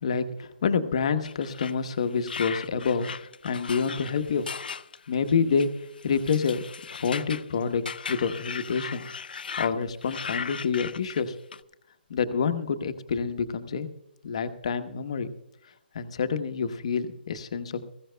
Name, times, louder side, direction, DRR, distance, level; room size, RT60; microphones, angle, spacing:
voice 1, 0.0-4.5 5.1-5.7 6.0-6.6 6.9-7.8 8.1-9.1 9.6-11.4 12.1-13.9 14.2-15.3 15.9-17.8, left 6 dB, 35° left, 9 dB, 1.0 m, -27 dB
sound 1, 1.2-9.7 10.0-11.6, left 6 dB, 60° left, 0.5 m, -37 dB
19.5 x 16.0 x 2.2 m, 0.82 s
hypercardioid pair, 175°, 6 cm